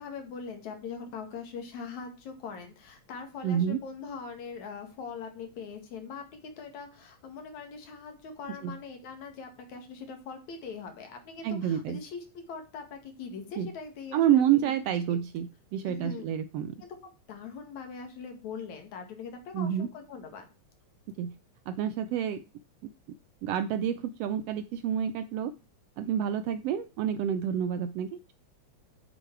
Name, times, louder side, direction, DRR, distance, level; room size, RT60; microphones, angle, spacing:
voice 1, 0.0-12.2 12.5-14.6 15.1-15.2 15.8-16.3 16.8-20.5, left 5 dB, 75° left, 5 dB, 3.4 m, -42 dB
voice 2, 3.4-3.8 8.6-8.8 11.4-12.0 13.6-13.7 14.1-16.8 19.5-19.9 21.2-21.4 21.7-22.4 23.4-25.5 26.0-28.3, right 9 dB, 80° right, 12 dB, 1.4 m, -28 dB
8.5 x 7.7 x 4.6 m, 0.31 s
omnidirectional pair, 3.3 m